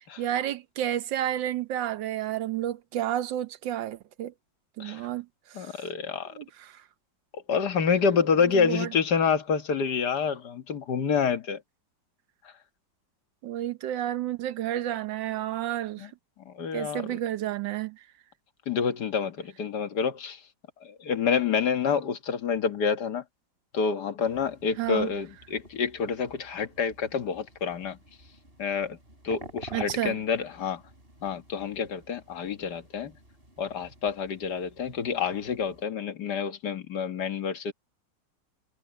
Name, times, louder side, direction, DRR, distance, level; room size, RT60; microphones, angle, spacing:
voice 1, 0.2-4.3 4.8-5.3 5.5-5.7 6.3-6.4 6.7-6.8 8.5-8.9 13.4-16.1 16.7-18.0 24.8-25.1 29.7-30.2, right 12 dB, 85° right, 1.6 m, -30 dB
voice 2, 5.5-6.3 7.3-11.6 16.0-16.1 16.4-17.1 18.7-20.4 20.8-23.2 23.7-28.0 28.6-29.0 29.2-30.8 31.2-33.1 33.6-37.7, left 6 dB, 65° left, 2.0 m, -28 dB
sound 1, 24.2-35.8, right 2 dB, 30° right, 8.2 m, -49 dB
omnidirectional pair, 1.9 m